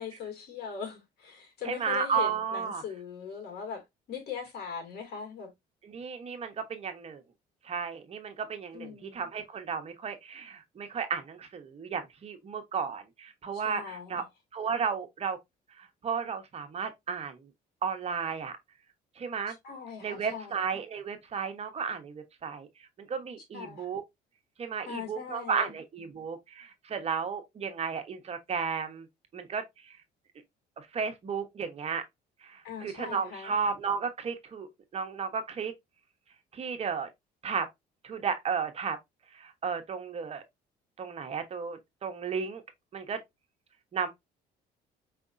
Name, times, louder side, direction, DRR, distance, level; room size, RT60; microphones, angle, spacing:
voice 1, 0.0-5.5 8.7-9.2 13.5-14.2 19.5-20.5 23.5-23.9 24.8-25.8 32.6-33.6, left 7 dB, 70° left, 2.3 m, -40 dB
voice 2, 1.6-2.8 5.8-7.2 7.6-14.2 14.5-15.4 15.8-17.5 17.8-18.5 19.2-19.5 20.0-22.7 23.0-24.0 24.6-29.1 29.3-30.0 30.8-32.0 32.4-35.7 36.5-37.1 37.4-37.7 38.0-39.0 39.3-40.4 41.0-42.6 42.9-43.2 43.9-44.1, right 6 dB, 40° right, 1.0 m, -33 dB
4.8 x 3.4 x 2.5 m
cardioid pair, 110°, 17 cm